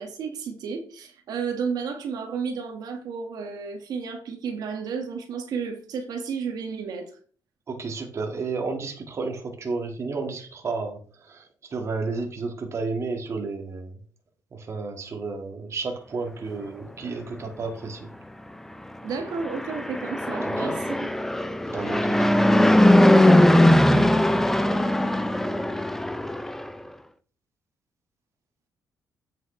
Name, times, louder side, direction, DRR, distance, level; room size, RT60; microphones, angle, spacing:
voice 1, 0.0-7.1 19.0-21.1, right 5 dB, 75° right, 4 dB, 1.7 m, -32 dB
voice 2, 7.7-11.4 11.7-13.9 14.5-18.1 20.6-20.7 21.7-22.2, right 4 dB, 45° right, 3 dB, 1.9 m, -32 dB
Fixed-wing aircraft airplane, 19.3-26.7, left 1 dB, 5° left, 0.7 m, -20 dB
8.2 x 7.4 x 3.2 m, 0.42 s
cardioid pair, 110°, 7 cm